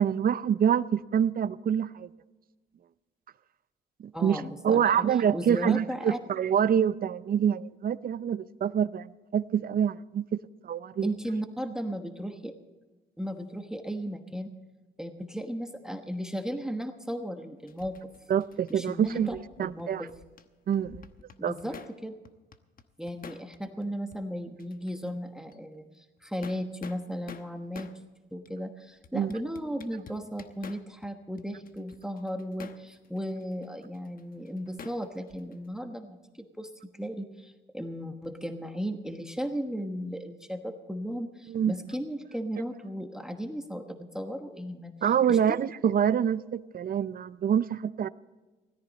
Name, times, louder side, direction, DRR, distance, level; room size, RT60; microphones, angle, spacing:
voice 1, 0.0-2.1 4.0-10.3 10.6-11.1 18.3-20.1 20.7-21.0 21.4-21.5 29.1-29.3 41.5-41.7 45.0-48.1, right 8 dB, 50° right, 17 dB, 0.5 m, -26 dB
voice 2, 4.1-4.9 5.3-6.2 11.0-12.5 13.2-14.5 15.0-18.1 18.7-19.4 19.6-20.1 21.4-21.7 22.0-22.1 23.0-27.9 28.3-36.7 37.0-44.9 45.3-45.4, equal, 5° right, 6 dB, 1.2 m, -35 dB
sound 1, 17.7-20.4 20.7-22.0 22.2-23.9 24.1-24.2 24.6-25.2 25.5-25.6 26.2-28.0 28.4-28.5 29.0-31.1 31.4-35.7, left 6 dB, 45° left, 1.0 m, -49 dB
17.0 x 14.0 x 4.2 m, 1.2 s
cardioid pair, 90°, 20 cm